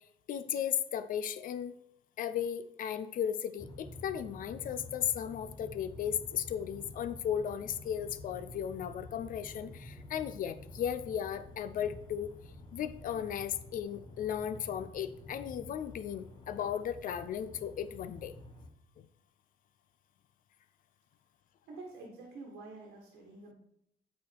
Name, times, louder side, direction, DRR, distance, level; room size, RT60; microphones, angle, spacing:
voice 1, 0.3-1.7 2.2-12.3 12.7-18.3, left 9 dB, 55° left, 12 dB, 0.5 m, -35 dB
sound 1, 3.6-18.7, left 2 dB, 30° left, 1.2 m, -50 dB
voice 2, 21.7-23.5, right 3 dB, 75° right, 0 dB, 1.5 m, -48 dB
8.2 x 4.3 x 4.6 m, 0.76 s
cardioid pair, 110°, 17 cm